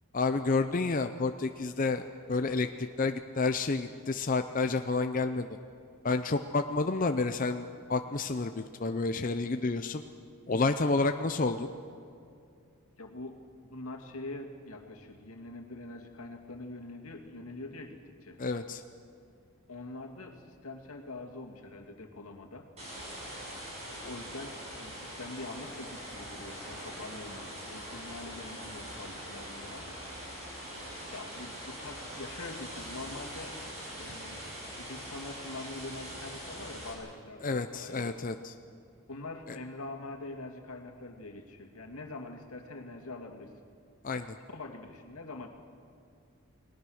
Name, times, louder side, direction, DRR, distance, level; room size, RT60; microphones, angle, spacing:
voice 1, 0.1-5.5 6.0-10.0 10.5-11.7 18.4-18.8 37.4-38.5 44.0-44.4, left 3 dB, 40° left, 7 dB, 0.6 m, -30 dB
voice 2, 13.0-13.4 13.7-18.4 19.7-22.7 23.9-30.0 30.7-33.6 34.0-34.4 34.8-38.2 39.1-43.5 44.5-45.5, left 2 dB, 85° left, 3 dB, 2.4 m, -44 dB
sound 1, 22.8-36.9, equal, 30° right, 6.4 m, -43 dB
29.5 x 19.5 x 6.4 m, 2.5 s
head